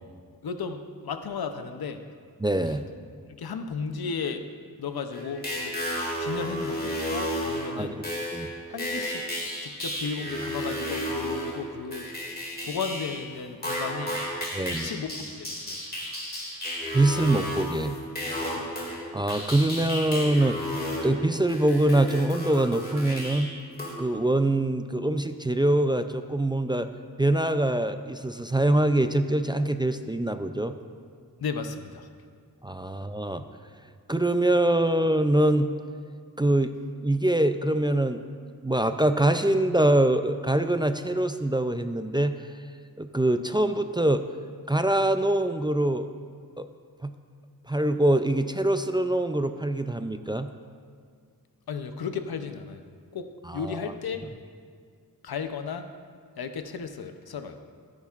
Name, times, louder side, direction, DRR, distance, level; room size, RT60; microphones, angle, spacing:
voice 1, 0.4-2.0 2.7-2.8 3.4-4.4 4.8-5.7 6.2-8.0 8.7-9.2 9.6-12.1 12.6-14.2 14.7-15.8 18.5-18.7 31.4-32.1 51.7-52.9 53.1-53.2 53.5-54.2 55.2-55.8 56.4-57.6, left 5 dB, 90° left, 8 dB, 0.7 m, -34 dB
voice 2, 2.4-2.8 7.7-8.0 8.3-8.5 14.5-14.9 16.9-18.0 19.1-20.7 21.0-23.5 24.0-26.9 27.2-30.8 32.6-33.4 34.1-35.7 36.4-36.7 37.0-38.2 38.6-42.3 43.0-44.2 44.7-46.1 46.6-46.7 47.0-47.1 47.7-50.5 53.5-53.9, right 1 dB, 15° right, 8 dB, 0.3 m, -24 dB
sound 1, 5.1-13.2 13.6-23.9, equal, 25° left, 2.2 m, -33 dB
14.0 x 9.9 x 2.4 m, 2.1 s
wide cardioid pair, 90°, 36 cm